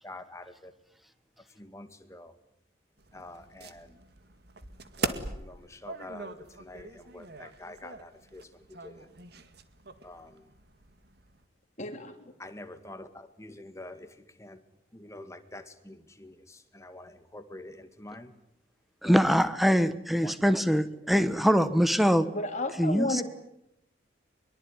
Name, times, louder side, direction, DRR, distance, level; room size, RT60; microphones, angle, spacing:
voice 1, 0.0-0.7 1.5-2.4 3.1-4.0 4.9-9.1 10.0-10.5 12.4-14.6 14.9-18.3 19.0-19.4 20.2-20.6, left 1 dB, 15° left, 2.0 m, -47 dB
sound 1, 3.0-11.5, right 3 dB, 55° right, 2.0 m, -41 dB
voice 2, 11.8-12.3 22.3-23.2, left 2 dB, 40° left, 3.4 m, -32 dB
voice 3, 19.0-22.3 22.7-23.2, equal, ahead, 1.2 m, -23 dB
23.0 x 23.0 x 9.8 m
head